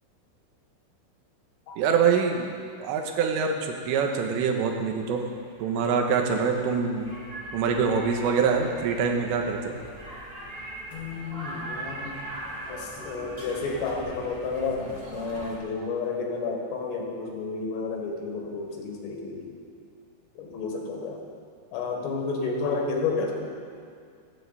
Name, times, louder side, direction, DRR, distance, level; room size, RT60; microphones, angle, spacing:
voice 1, 1.8-2.5 2.8-5.3 5.6-7.1 7.5-9.8, right 6 dB, 75° right, 3 dB, 3.2 m, -25 dB
sound 1, 4.9-15.6, right 1 dB, 35° right, 0.9 m, -41 dB
voice 2, 10.9-12.1 12.7-19.6 20.4-21.2 21.7-23.5, left 4 dB, 85° left, 0 dB, 4.3 m, -31 dB
24.0 x 8.5 x 4.1 m, 2.2 s
omnidirectional pair, 5.7 m